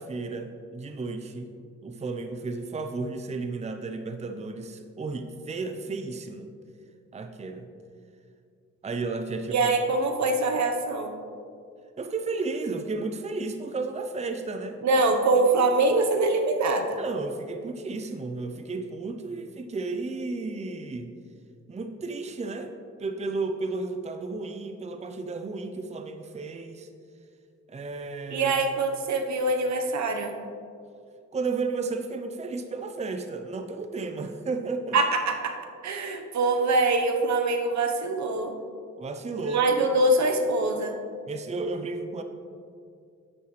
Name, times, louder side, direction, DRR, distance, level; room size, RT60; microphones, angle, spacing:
voice 1, 0.0-1.5 1.8-6.5 7.1-7.7 8.8-9.7 12.0-14.8 17.0-21.1 21.7-22.7 23.0-26.9 27.7-28.6 31.3-35.0 39.0-39.7 41.3-42.2, right 3 dB, 25° right, 7 dB, 0.6 m, -33 dB
voice 2, 9.5-11.2 14.8-17.0 28.3-30.3 34.9-35.5 35.8-38.5 39.5-41.0, right 2 dB, 70° right, 4 dB, 1.1 m, -24 dB
9.7 x 8.4 x 3.2 m, 2.3 s
cardioid pair, 80°, 29 cm